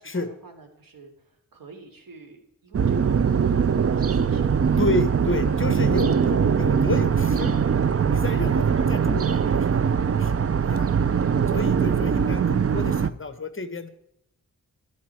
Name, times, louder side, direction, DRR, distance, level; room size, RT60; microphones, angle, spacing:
voice 1, 0.0-4.6 11.2-11.5, right 3 dB, 75° right, 4 dB, 3.2 m, -47 dB
sound 1, 2.7-13.1, right 7 dB, 45° right, 0.5 m, -22 dB
voice 2, 4.8-7.6 8.1-10.3 10.6-11.0 11.5-13.9, left 3 dB, 35° left, 11 dB, 1.3 m, -30 dB
13.5 x 12.5 x 4.8 m, 0.78 s
wide cardioid pair, 130°, 34 cm